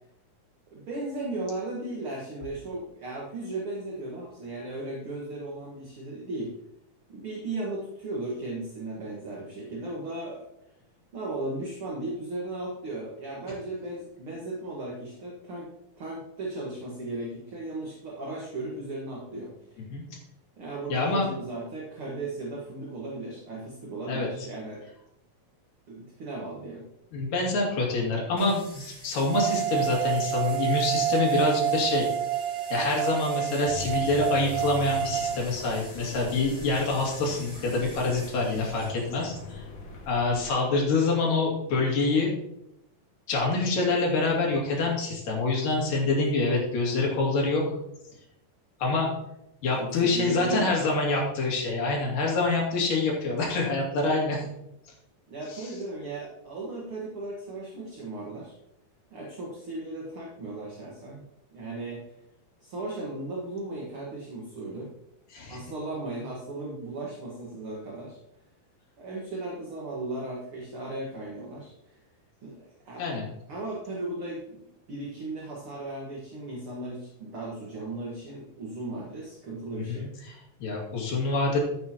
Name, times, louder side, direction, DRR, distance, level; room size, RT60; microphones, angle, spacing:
voice 1, 0.7-6.5 7.1-10.4 11.1-15.7 16.0-19.8 20.6-24.9 25.9-26.9 49.8-50.8 54.4-54.5 55.3-58.5 59.1-61.2 61.5-62.1 62.6-64.9 65.5-68.2 69.0-72.0 72.4-73.0 73.5-80.1, right 2 dB, 45° right, -3 dB, 2.1 m, -36 dB
voice 2, 20.9-21.3 24.1-24.3 27.1-32.1 32.7-39.6 40.1-42.3 43.3-47.6 48.8-49.1 49.6-54.4 55.5-55.7 65.3-65.6 73.0-73.2 79.7-81.6, left 3 dB, 70° left, -2 dB, 4.1 m, -26 dB
sound 1, 28.4-38.9, left 1 dB, 10° left, 3.3 m, -47 dB
sound 2, 29.3-35.4, right 11 dB, 85° right, 1.7 m, -28 dB
sound 3, 33.6-40.5, left 4 dB, 50° left, 2.6 m, -41 dB
14.0 x 8.4 x 3.0 m, 0.83 s
omnidirectional pair, 4.0 m